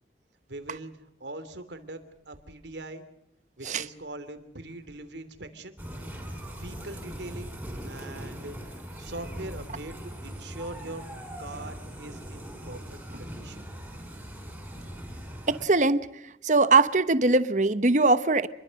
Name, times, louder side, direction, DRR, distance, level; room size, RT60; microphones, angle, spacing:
voice 1, 0.5-2.0 2.3-3.0 3.6-5.8 6.3-7.5 7.8-8.6 9.0-10.0 10.2-11.0 11.4-13.6, right 2 dB, 80° right, 3.0 m, -42 dB
sound 1, 5.8-15.6, equal, 10° right, 5.8 m, -40 dB
voice 2, 15.5-16.1 16.4-18.5, right 3 dB, 40° right, 1.0 m, -21 dB
28.5 x 22.0 x 6.5 m
head